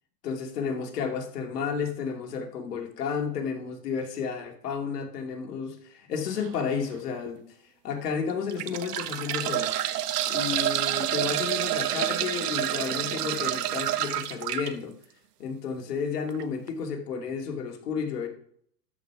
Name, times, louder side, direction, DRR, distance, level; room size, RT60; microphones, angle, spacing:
voice 1, 0.2-7.4 7.8-9.7 10.3-14.9 15.4-18.3, left 6 dB, 70° left, 3 dB, 2.7 m, -32 dB
sound 1, 6.4-6.6 7.3-7.4 8.3-14.7 16.3-16.4 16.7-16.8, right 12 dB, 70° right, 1.1 m, -28 dB
13.0 x 5.3 x 6.0 m, 0.63 s
hypercardioid pair, 135°, 49 cm